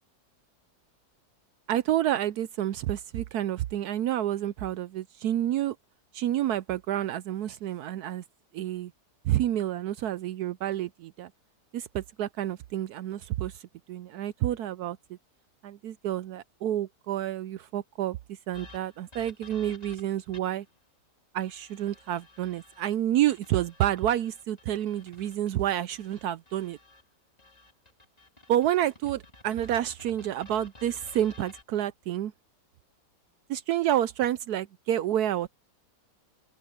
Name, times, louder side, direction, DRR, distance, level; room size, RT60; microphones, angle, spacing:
voice 1, 1.7-5.8 6.1-8.2 8.5-8.9 9.2-11.3 11.7-13.6 13.9-15.0 15.6-20.6 21.3-26.8 28.5-32.3 33.5-35.5, right 12 dB, 75° right, 1.1 m, -29 dB
sound 1, 18.5-20.7 21.4-22.8 23.3-27.0 27.4-31.6, left 2 dB, 20° left, 2.9 m, -53 dB
open air
omnidirectional pair, 1.8 m